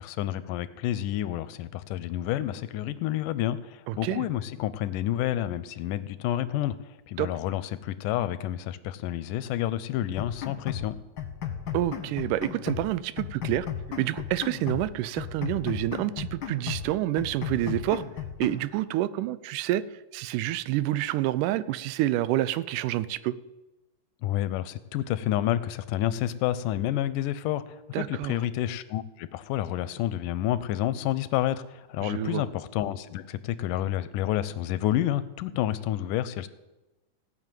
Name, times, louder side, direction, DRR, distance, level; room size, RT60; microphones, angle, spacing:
voice 1, 0.0-6.8 7.1-11.0 24.2-36.5, left 12 dB, 85° left, 15 dB, 2.2 m, -29 dB
voice 2, 3.9-4.3 7.2-7.3 11.7-13.7 14.0-18.0 18.4-23.3 27.9-28.4 32.0-32.4, right 15 dB, 85° right, 16 dB, 2.1 m, -28 dB
sound 1, 10.0-10.9 11.2-12.9 13.2-14.9 15.2-16.9 17.2-18.7, left 9 dB, 50° left, 1.4 m, -35 dB
16.5 x 6.4 x 9.1 m, 1.0 s
omnidirectional pair, 3.7 m